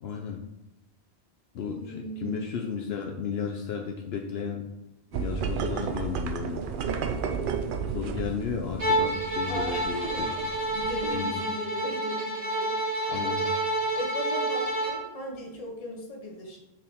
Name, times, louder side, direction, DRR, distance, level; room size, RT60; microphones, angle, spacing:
voice 1, 0.0-0.4 1.5-4.7 5.2-6.6 7.9-10.3 11.1-11.3 13.1-13.5, left 6 dB, 70° left, 2 dB, 0.8 m, -33 dB
voice 2, 1.5-2.5 9.5-10.4 10.7-13.4 13.9-16.6, left 1 dB, 35° left, 0 dB, 1.1 m, -37 dB
sound 1, 5.1-11.0, right 6 dB, 60° right, 0.7 m, -33 dB
Bowed string instrument, 8.8-15.0, right 1 dB, 40° right, 1.1 m, -29 dB
6.0 x 4.6 x 3.6 m, 0.91 s
omnidirectional pair, 1.1 m